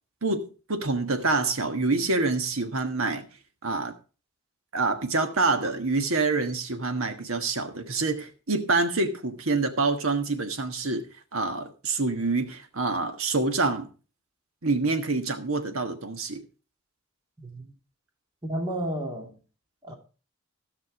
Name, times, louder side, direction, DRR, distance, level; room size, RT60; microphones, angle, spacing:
voice 1, 0.2-3.2 3.6-3.9 4.7-11.1 11.3-13.9 14.6-16.4, right 3 dB, 90° right, 1.4 m, -26 dB
voice 2, 17.4-17.7 18.4-19.3 19.8-19.9, right 1 dB, 20° right, 2.3 m, -32 dB
15.5 x 6.0 x 4.7 m
head